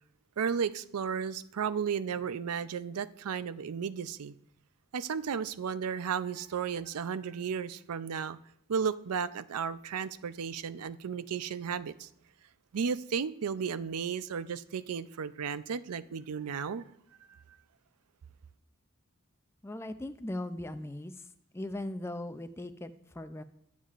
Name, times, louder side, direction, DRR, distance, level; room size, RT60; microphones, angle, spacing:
voice 1, 0.4-4.3 4.9-8.4 8.7-12.1 12.7-16.8, right 6 dB, 85° right, 0.5 m, -34 dB
voice 2, 19.6-21.1 21.5-23.4, left 1 dB, 10° left, 0.4 m, -39 dB
19.5 x 7.3 x 2.5 m
head